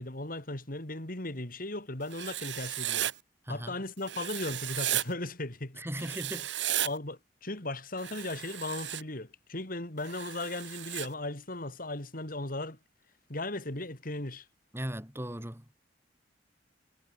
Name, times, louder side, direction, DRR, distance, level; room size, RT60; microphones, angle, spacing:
voice 1, 0.0-3.1 3.5-6.1 6.8-12.8 13.3-14.5, left 2 dB, 50° left, 3.9 m, -37 dB
Writing, 2.1-3.1 4.1-5.0 6.0-6.9 8.0-9.0 10.0-11.1, right 12 dB, 90° right, 1.9 m, -34 dB
voice 2, 5.8-6.5 14.7-15.8, right 1 dB, 15° right, 3.3 m, -37 dB
head